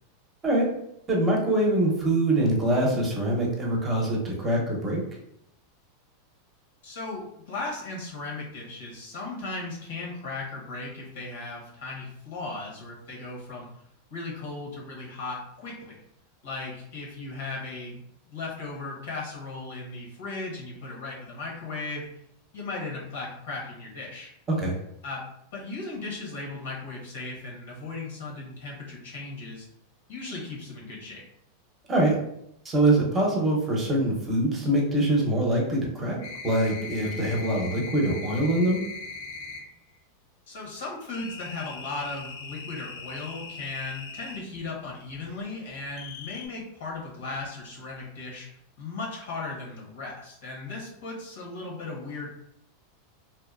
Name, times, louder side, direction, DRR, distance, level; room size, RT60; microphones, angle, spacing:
voice 1, 1.1-5.0 24.6-24.7 31.9-32.2 32.6-38.8, right 1 dB, 25° right, -2 dB, 0.8 m, -24 dB
voice 2, 6.8-13.7 14.1-16.0 16.4-22.0 22.5-24.3 25.0-25.2 25.5-29.6 30.1-31.2 40.5-48.5 48.8-52.3, left 3 dB, 85° left, -3 dB, 1.0 m, -37 dB
sound 1, 36.2-39.7 41.1-44.4 45.9-46.5, left 4 dB, 60° left, 0.5 m, -40 dB
2.7 x 2.1 x 2.4 m, 0.75 s
supercardioid pair, 125°, 0 cm